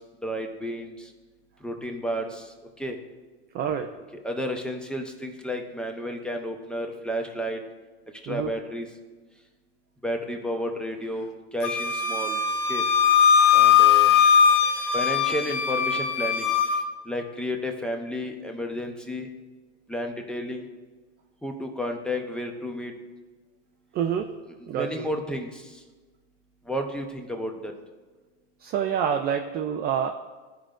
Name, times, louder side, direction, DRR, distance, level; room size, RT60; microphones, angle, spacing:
voice 1, 0.2-1.1 1.6-2.5 2.8-3.0 4.1-7.6 8.2-8.9 10.0-12.4 12.7-12.8 13.5-14.1 14.9-16.5 17.1-19.3 19.9-20.7 21.4-22.9 24.7-25.6 26.7-27.7, equal, 5° left, 3 dB, 0.8 m, -32 dB
voice 2, 3.5-3.9 8.3-8.5 23.9-24.3 24.7-25.1 28.6-30.1, right 8 dB, 30° right, 5 dB, 0.3 m, -27 dB
Wind instrument woodwind instrument, 11.6-16.8, left 8 dB, 90° left, 0.8 m, -20 dB
14.5 x 5.1 x 2.5 m, 1.3 s
supercardioid pair, 125°, 35 cm